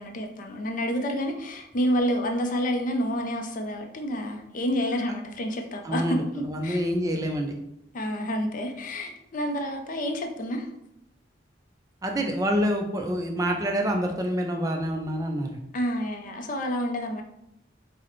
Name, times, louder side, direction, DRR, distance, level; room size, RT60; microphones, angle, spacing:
voice 1, 0.0-6.8 7.9-10.7 15.7-17.2, equal, 45° left, 4 dB, 0.4 m, -29 dB
voice 2, 5.8-7.5 12.0-15.6, equal, 20° right, 2 dB, 0.3 m, -27 dB
4.8 x 2.1 x 3.0 m, 0.81 s
head